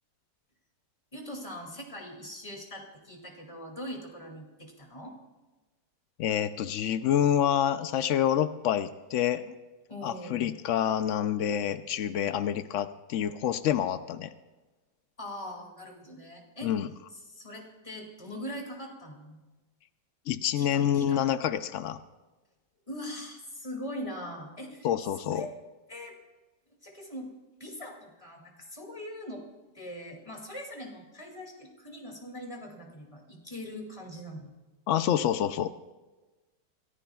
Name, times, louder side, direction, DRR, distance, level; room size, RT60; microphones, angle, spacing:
voice 1, 1.1-5.1 9.9-10.6 15.2-16.7 17.1-19.4 20.6-21.3 22.9-24.9 25.1-25.5 25.9-26.2 26.8-27.3 27.6-29.4 29.7-34.5, equal, 20° left, 0 dB, 2.4 m, -41 dB
voice 2, 6.2-9.5 10.0-14.3 16.6-16.9 20.3-22.0 24.8-25.5 34.9-35.7, left 10 dB, 90° left, 11 dB, 0.6 m, -27 dB
26.5 x 15.0 x 2.3 m, 1.2 s
omnidirectional pair, 1.9 m